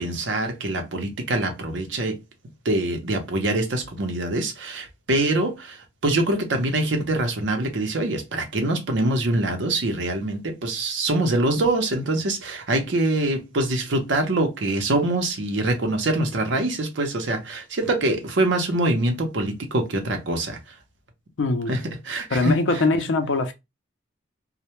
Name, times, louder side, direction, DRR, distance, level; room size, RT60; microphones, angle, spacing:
voice 1, 0.0-2.2 2.6-20.6 21.7-22.6, right 2 dB, 70° right, 0.6 m, -24 dB
voice 2, 21.4-21.7 22.3-23.5, left 3 dB, 70° left, 0.5 m, -22 dB
2.1 x 2.1 x 2.8 m
head